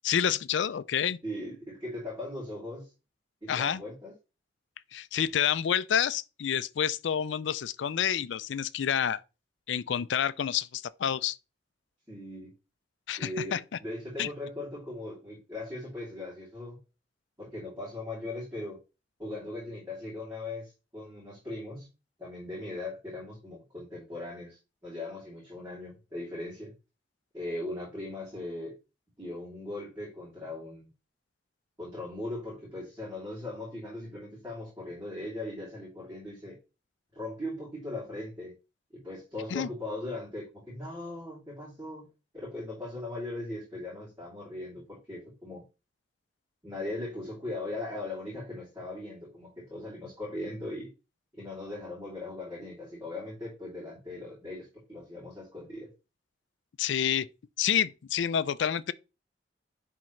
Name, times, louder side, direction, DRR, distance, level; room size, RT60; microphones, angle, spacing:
voice 1, 0.0-1.2 3.5-3.8 4.9-9.2 9.7-11.4 13.1-13.8 14.2-14.3 39.5-39.7 56.8-57.3 57.6-58.9, left 8 dB, 85° left, 0.4 m, -28 dB
voice 2, 1.2-2.9 3.4-4.1 12.1-12.5 13.2-16.8 17.4-18.8 19.2-21.9 22.2-26.7 27.3-28.8 29.2-30.9 31.8-36.6 37.1-38.5 39.0-42.1 42.3-45.6 46.6-50.9 51.3-55.9, left 2 dB, 15° right, 2.8 m, -39 dB
10.0 x 3.7 x 3.1 m
head